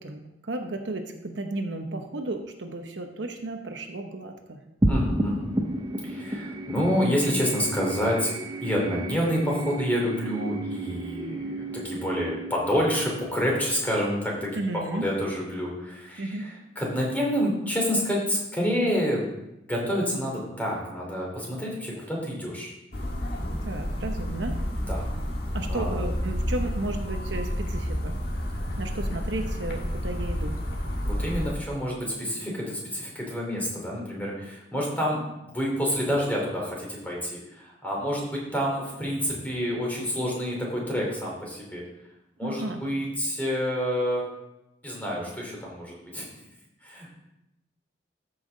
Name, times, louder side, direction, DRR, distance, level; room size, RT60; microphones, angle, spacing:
voice 1, 0.0-4.6 14.6-15.1 16.2-16.5 23.6-24.6 25.5-28.1 28.8-30.6 42.4-42.8, right 2 dB, 70° right, 5 dB, 0.9 m, -33 dB
sound 1, 4.8-15.5, right 1 dB, 20° right, 0.7 m, -32 dB
voice 2, 4.9-5.5 6.0-8.3 8.6-19.3 19.7-22.7 24.8-25.1 25.7-26.0 31.0-41.8 42.4-44.2 44.8-46.4 46.8-47.1, equal, 10° left, -3 dB, 2.8 m, -28 dB
sound 2, 22.9-31.5, equal, 55° left, 1.5 m, -30 dB
13.5 x 5.7 x 3.9 m, 0.89 s
head